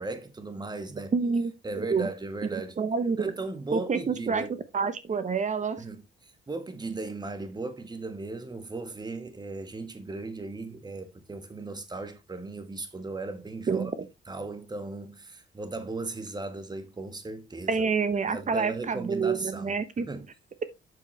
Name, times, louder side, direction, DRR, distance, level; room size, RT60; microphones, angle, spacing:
voice 1, 0.0-1.1 1.6-2.8 3.2-4.5 5.8-13.9 14.3-17.8 18.3-20.3, right 3 dB, 20° right, 1.8 m, -37 dB
voice 2, 1.1-1.5 1.8-2.1 2.5-3.2 3.7-4.4 4.7-5.8 13.7-13.9 17.7-20.1, right 5 dB, 40° right, 1.0 m, -27 dB
7.9 x 6.7 x 3.3 m
cardioid pair, 90°, 20 cm